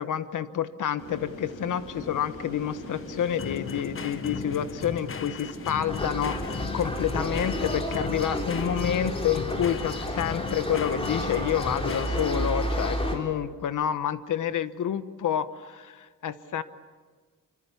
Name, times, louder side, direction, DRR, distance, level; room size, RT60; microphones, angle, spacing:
voice 1, 0.0-16.6, left 9 dB, 65° left, 12 dB, 1.2 m, -29 dB
sound 1, 1.0-7.8, left 1 dB, 85° left, 7.7 m, -42 dB
sound 2, 1.1-12.8, left 6 dB, 40° left, 1.2 m, -38 dB
sound 3, 5.9-13.2, equal, 15° left, 3.6 m, -31 dB
27.0 x 25.0 x 6.9 m, 1.5 s
wide cardioid pair, 165°, 33 cm